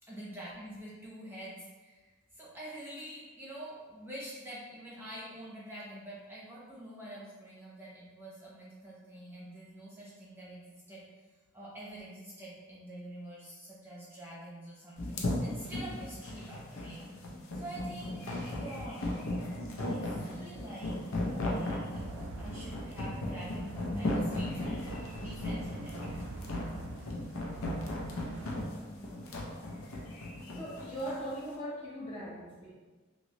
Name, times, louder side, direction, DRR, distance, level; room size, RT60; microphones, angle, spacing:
voice 1, 0.0-11.1 11.5-17.0 17.5-19.2 19.8-26.2 26.7-27.1, right 1 dB, 10° right, -7 dB, 0.7 m, -46 dB
sound 1, 15.0-31.2, left 1 dB, 80° left, 0.6 m, -36 dB
sound 2, 21.9-28.7, right 2 dB, 65° right, 0.3 m, -45 dB
voice 2, 28.9-29.7 30.5-32.7, right 1 dB, 25° left, -6 dB, 0.6 m, -41 dB
3.0 x 2.8 x 2.8 m, 1.3 s
head